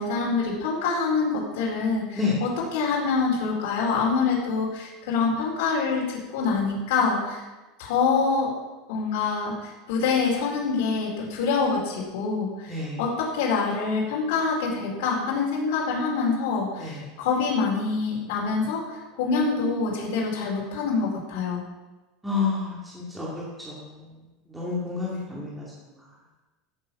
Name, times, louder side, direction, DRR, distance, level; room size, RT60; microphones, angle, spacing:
voice 1, 0.0-7.4 7.8-8.5 8.9-21.6, left 4 dB, 65° left, -4 dB, 4.5 m, -26 dB
voice 2, 22.2-23.3 23.7-23.8 24.5-25.6, left 4 dB, 5° right, -7 dB, 2.4 m, -29 dB
15.5 x 7.3 x 5.9 m, 1.2 s
supercardioid pair, 170°, 0 cm